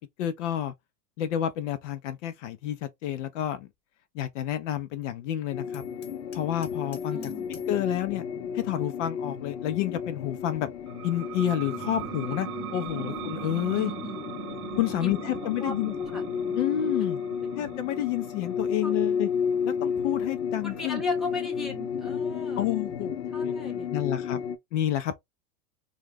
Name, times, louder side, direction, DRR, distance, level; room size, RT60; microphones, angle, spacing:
voice 1, 0.2-0.7 1.2-3.7 4.1-5.8 6.3-8.2 8.5-10.7 11.0-13.9 14.8-15.9 16.5-17.2 17.5-19.3 19.6-21.0 22.6-23.5 23.9-24.4 24.7-25.2, left 12 dB, 50° left, 0.5 m, -29 dB
sound 1, 5.5-24.6, left 7 dB, 85° left, 0.9 m, -32 dB
Hammer, 5.7-7.8, left 6 dB, 20° left, 0.8 m, -52 dB
voice 2, 7.1-7.5 13.0-13.2 13.8-14.2 15.0-15.2 15.6-16.2 18.8-19.0 20.6-22.7 23.3-23.9, left 1 dB, ahead, 0.5 m, -37 dB
sound 2, 10.9-22.1, right 15 dB, 60° right, 0.6 m, -41 dB
3.0 x 2.4 x 3.4 m
hypercardioid pair, 120°, 50 cm